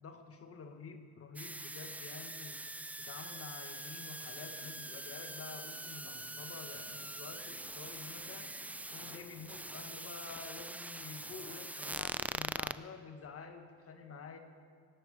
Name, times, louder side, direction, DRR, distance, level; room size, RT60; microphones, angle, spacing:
voice 1, 0.0-2.6 3.1-8.5 8.9-14.4, left 5 dB, 50° left, 7 dB, 1.3 m, -49 dB
sound 1, 1.4-12.8, right 2 dB, 5° right, 0.3 m, -43 dB
sound 2, 4.3-10.0, left 6 dB, 70° left, 1.4 m, -62 dB
18.0 x 8.1 x 8.4 m, 2.1 s
cardioid pair, 90°, 30 cm